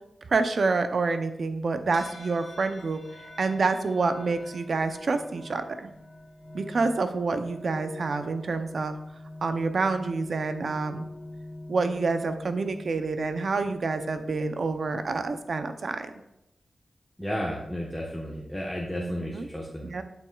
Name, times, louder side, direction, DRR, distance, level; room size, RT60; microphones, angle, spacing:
voice 1, 0.3-3.0 3.4-5.9 6.5-9.0 9.4-11.0 11.7-16.1 19.0-19.5 19.8-20.0, right 4 dB, 65° right, 8 dB, 0.6 m, -27 dB
sound 1, 1.9-15.5, left 1 dB, 35° left, 1.8 m, -45 dB
voice 2, 17.2-19.9, equal, ahead, -3 dB, 1.1 m, -33 dB
11.0 x 6.1 x 2.4 m, 0.86 s
wide cardioid pair, 75°, 0 cm